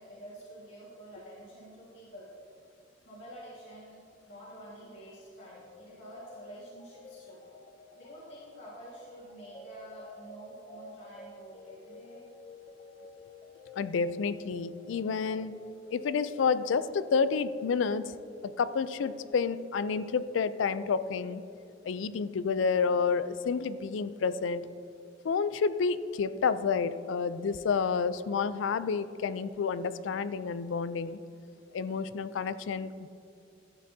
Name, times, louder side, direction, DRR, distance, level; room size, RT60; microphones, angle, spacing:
voice 1, 0.0-2.3 3.0-4.0 4.3-7.4 8.0-12.3, right 1 dB, 65° left, -9 dB, 1.7 m, -48 dB
sound 1, 5.4-22.0, left 2 dB, 30° left, 0.5 m, -52 dB
voice 2, 13.7-15.6 15.9-18.1 18.4-21.4 21.8-24.7 25.2-31.2 31.7-33.1, left 5 dB, 90° left, 14 dB, 0.4 m, -29 dB
12.5 x 8.9 x 2.7 m, 2.6 s
head